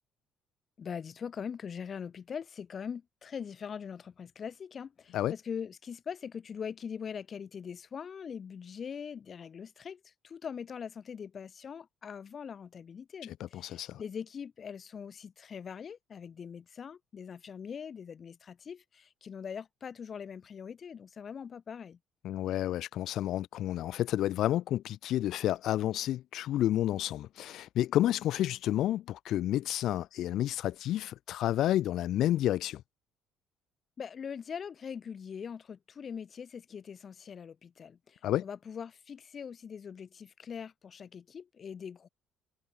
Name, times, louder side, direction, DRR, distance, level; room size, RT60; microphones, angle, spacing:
voice 1, 0.8-22.0 34.0-42.1, left 7 dB, 35° left, 1.8 m, -42 dB
voice 2, 13.5-14.0 22.2-32.8 38.2-38.4, left 13 dB, 65° left, 0.8 m, -30 dB
cardioid pair, 130°, 0 cm